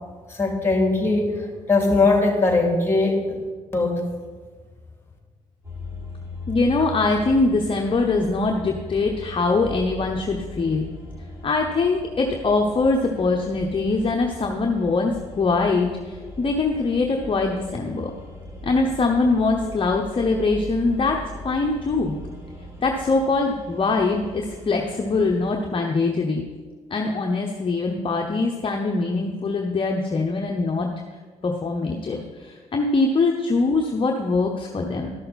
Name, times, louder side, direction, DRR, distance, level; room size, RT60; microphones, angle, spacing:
voice 1, 0.3-3.4 3.7-4.0, left 3 dB, 15° left, 1 dB, 2.8 m, -20 dB
sound 1, 5.6-25.5, left 1 dB, 20° right, 3.5 m, -39 dB
voice 2, 6.5-10.8 11.4-18.1 18.6-22.2 22.8-26.4 26.9-30.9 31.4-35.1, left 3 dB, 35° left, 2 dB, 0.9 m, -23 dB
13.0 x 6.6 x 4.2 m, 1.4 s
supercardioid pair, 60°, 14 cm